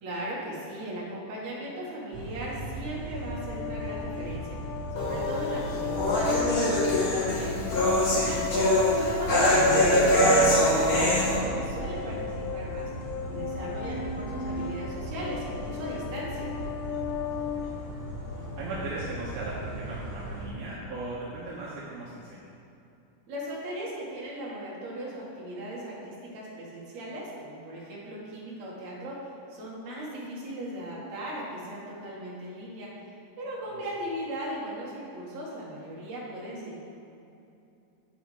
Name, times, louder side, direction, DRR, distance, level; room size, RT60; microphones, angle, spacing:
voice 1, 0.0-8.5 8.9-12.9 13.3-16.5 23.3-36.8, right 1 dB, 60° right, -6 dB, 3.0 m, -38 dB
sound 1, 2.1-20.5, right 2 dB, 45° right, 1.3 m, -38 dB
sound 2, 3.2-18.6, left 8 dB, 80° left, 2.0 m, -36 dB
sound 3, 5.0-11.4, left 1 dB, 55° left, 1.0 m, -23 dB
voice 2, 18.6-22.4, right 2 dB, 75° right, -7 dB, 2.5 m, -37 dB
9.1 x 8.4 x 3.4 m, 2.7 s
omnidirectional pair, 3.8 m